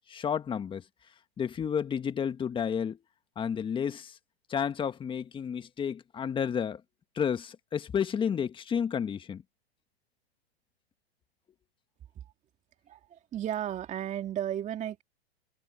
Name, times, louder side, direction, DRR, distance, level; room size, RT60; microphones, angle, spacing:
voice 1, 0.1-0.8 1.4-3.0 3.3-4.2 4.5-6.8 7.1-9.4, left 7 dB, 15° left, 1.5 m, -31 dB
voice 2, 12.9-15.0, right 11 dB, 25° right, 2.8 m, -34 dB
hypercardioid pair, 130°, 31 cm